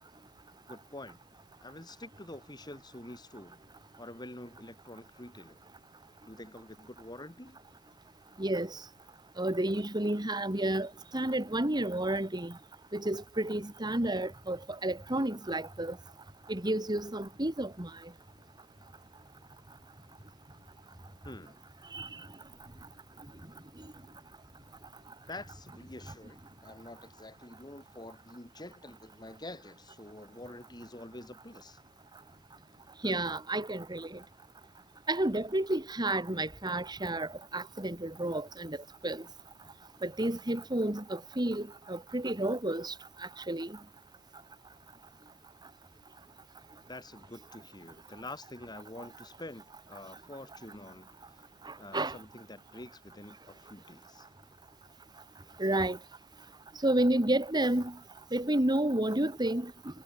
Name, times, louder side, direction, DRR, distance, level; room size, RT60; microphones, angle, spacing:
voice 1, 0.7-1.2 1.6-3.6 4.0-5.6 6.2-7.6 21.2-21.6 25.3-31.8 46.9-51.1 51.3-51.5 51.8-54.3, left 1 dB, 20° left, 3.1 m, -47 dB
voice 2, 8.4-8.8 9.4-12.5 12.9-16.0 16.5-17.9 21.9-22.2 33.0-34.2 35.1-38.8 39.0-39.2 40.0-43.8 51.6-52.2 55.6-56.0 56.8-57.9 58.3-59.7, right 1 dB, 20° right, 2.0 m, -31 dB
head